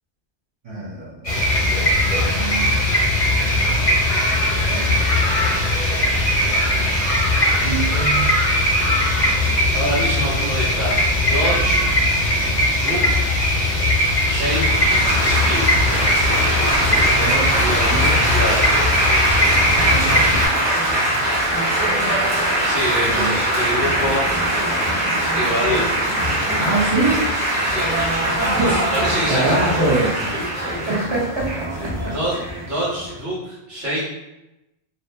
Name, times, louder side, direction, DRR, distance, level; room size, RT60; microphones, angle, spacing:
voice 1, 0.6-1.3 1.7-1.8 2.2-3.0 4.5-5.0 7.6-8.3 16.9-18.2 19.7-20.2 23.0-23.4 26.6-27.3 28.4-28.9 29.3-32.6, right 3 dB, 35° right, -5 dB, 0.5 m, -25 dB
sound 1, 1.2-20.5, left 1 dB, 40° left, 0.6 m, -19 dB
voice 2, 9.7-11.8 12.7-13.2 14.3-15.9 17.4-18.6 22.6-24.3 25.3-25.9 27.6-28.4 28.9-29.8 32.0-34.1, equal, 85° right, -8 dB, 1.3 m, -26 dB
Laughter / Applause / Chatter, 14.0-33.1, right 1 dB, 15° right, 1.1 m, -22 dB
2.6 x 2.4 x 2.2 m, 0.95 s
omnidirectional pair, 1.2 m